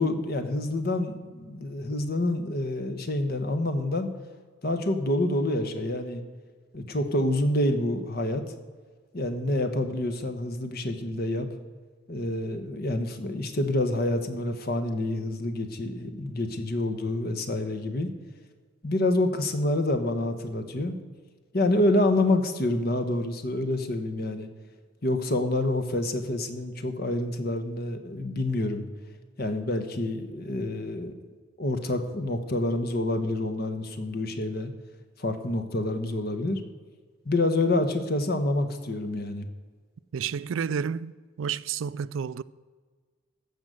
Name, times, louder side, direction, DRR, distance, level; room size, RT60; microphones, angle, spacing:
voice 1, 0.0-4.1 4.6-6.2 6.7-8.4 9.1-11.5 12.1-18.1 18.8-21.0 21.5-24.5 25.0-28.9 29.4-31.1 31.6-34.7 35.2-36.6 37.2-39.5, left 1 dB, 50° left, 1.1 m, -27 dB
voice 2, 40.1-41.1 41.4-42.4, right 7 dB, 80° right, 0.4 m, -30 dB
14.5 x 5.3 x 7.6 m
head